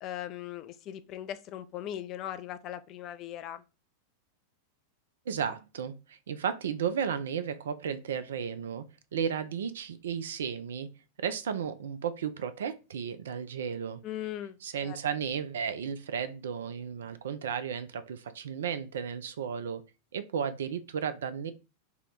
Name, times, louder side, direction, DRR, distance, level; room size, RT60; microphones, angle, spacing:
voice 1, 0.0-3.6 14.0-15.0, left 11 dB, 35° left, 0.3 m, -39 dB
voice 2, 5.3-8.9 9.1-10.9 11.2-14.0 14.6-19.8 20.1-21.5, right 7 dB, 65° right, 0.3 m, -34 dB
2.8 x 2.1 x 4.0 m
figure-of-eight pair, 90°, 0 cm